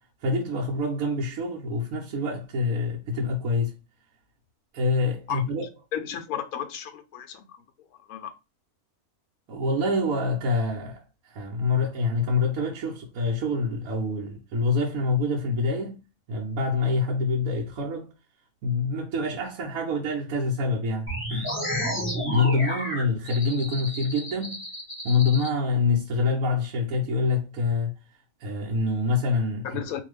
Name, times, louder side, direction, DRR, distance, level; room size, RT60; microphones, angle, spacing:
voice 1, 0.2-3.7 4.7-5.7 9.5-16.0 16.3-18.1 18.6-21.6 22.3-24.7 25.0-27.9 28.4-29.8, left 3 dB, 75° right, 1.0 m, -26 dB
voice 2, 5.9-7.4 8.1-8.3 29.6-30.0, left 9 dB, 75° left, 1.0 m, -33 dB
sound 1, 21.1-25.5, equal, 10° left, 1.0 m, -32 dB
2.6 x 2.3 x 3.2 m
omnidirectional pair, 1.6 m